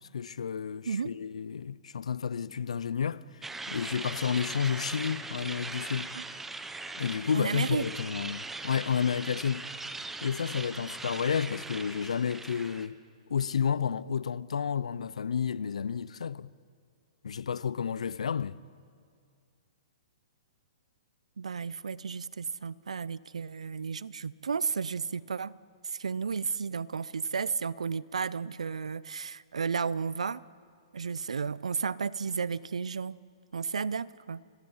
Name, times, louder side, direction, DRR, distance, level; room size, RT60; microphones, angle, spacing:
voice 1, 0.1-6.1 7.0-9.7 10.2-13.0 13.3-16.5 17.2-18.6, left 7 dB, 80° left, 0.6 m, -31 dB
sound 1, 3.4-12.9, right 3 dB, 5° right, 0.9 m, -40 dB
voice 2, 7.3-7.8 21.4-25.5 25.8-30.4 30.9-33.2 33.5-34.4, right 5 dB, 90° right, 0.5 m, -33 dB
23.5 x 20.5 x 5.6 m
hypercardioid pair, 130°, 3 cm